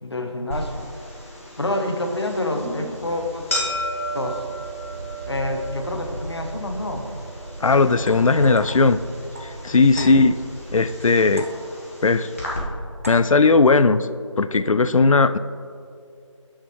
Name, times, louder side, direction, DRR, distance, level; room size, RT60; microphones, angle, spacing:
voice 1, 0.0-0.9 1.6-3.6 4.1-4.4 5.3-7.0 10.0-10.2, left 1 dB, 55° left, 4 dB, 1.0 m, -27 dB
sound 1, 0.5-12.6, right 1 dB, 25° left, 1.1 m, -34 dB
sound 2, 1.6-11.4, right 1 dB, 75° right, 0.8 m, -38 dB
voice 2, 7.6-9.0 9.4-10.4 10.7-11.5 12.0-12.3 13.1-14.1 14.4-15.4, left 3 dB, 85° left, 13 dB, 0.4 m, -17 dB
sound 3, 8.0-10.6 11.4-12.0 13.0-13.6, equal, 25° right, 0.5 m, -40 dB
11.0 x 6.5 x 3.1 m, 2.4 s
figure-of-eight pair, 165°, 17 cm